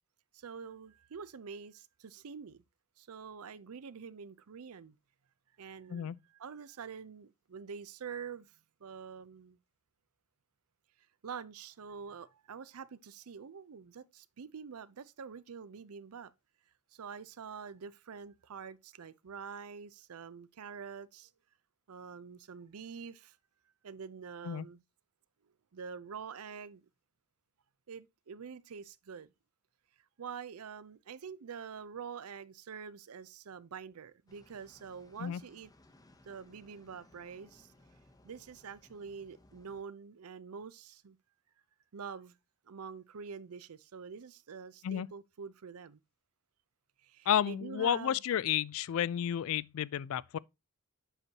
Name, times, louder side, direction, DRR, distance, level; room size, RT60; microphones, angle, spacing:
voice 1, 0.3-2.6 3.0-5.0 5.6-8.6 8.8-9.6 11.2-16.3 16.9-21.3 21.9-23.4 23.8-24.8 25.7-26.8 27.9-29.3 30.2-35.7 36.2-37.7 38.2-41.2 41.9-42.3 42.7-46.0 47.0-48.2, right 6 dB, 75° right, 0.5 m, -46 dB
sound 1, 34.3-39.8, left 1 dB, 15° left, 0.7 m, -63 dB
voice 2, 47.3-50.4, left 9 dB, 65° left, 0.3 m, -31 dB
7.9 x 6.0 x 2.8 m
head